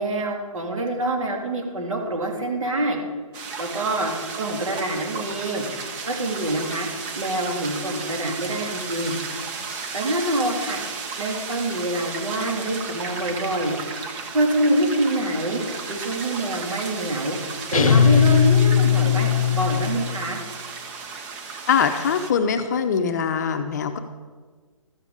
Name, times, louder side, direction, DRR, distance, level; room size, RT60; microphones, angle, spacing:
voice 1, 0.0-3.0 3.6-5.6 6.1-6.9 7.1-9.1 9.9-10.8 11.2-13.7 14.3-15.6 15.9-17.4 17.7-20.4, right 1 dB, 70° right, 2 dB, 2.9 m, -25 dB
sound 1, 3.3-22.3, right 5 dB, 10° right, 0.4 m, -34 dB
sound 2, 17.7-20.3, left 8 dB, 80° left, 0.8 m, -18 dB
voice 2, 21.7-24.0, left 6 dB, 30° left, 8 dB, 0.7 m, -22 dB
13.5 x 6.9 x 5.0 m, 1.4 s
hypercardioid pair, 155°, 18 cm